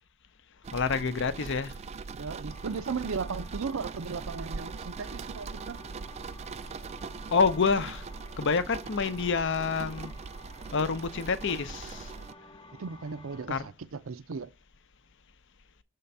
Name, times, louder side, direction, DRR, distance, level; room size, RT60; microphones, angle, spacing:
sound 1, 0.6-12.3, right 4 dB, 30° right, 0.3 m, -41 dB
voice 1, 0.7-1.8 7.3-8.0 8.4-10.1 10.7-12.1 13.5-13.6, left 5 dB, 60° left, 0.6 m, -28 dB
voice 2, 2.1-5.8 12.8-14.5, right 5 dB, 75° right, 0.6 m, -36 dB
sound 2, 2.5-13.5, left 2 dB, 30° left, 1.1 m, -52 dB
6.9 x 3.7 x 5.4 m
head